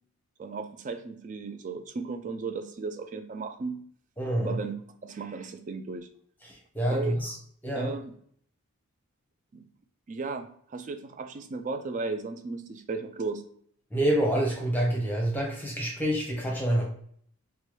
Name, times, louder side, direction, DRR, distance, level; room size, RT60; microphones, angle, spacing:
voice 1, 0.4-3.8 4.4-4.8 5.0-6.1 6.9-7.2 7.7-8.1 9.5-9.6 10.1-13.4, right 4 dB, 35° right, 8 dB, 0.3 m, -35 dB
voice 2, 4.2-4.6 6.4-7.3 7.6-7.9 13.9-16.8, right 1 dB, 10° left, -1 dB, 0.8 m, -27 dB
4.4 x 2.2 x 3.0 m, 0.62 s
head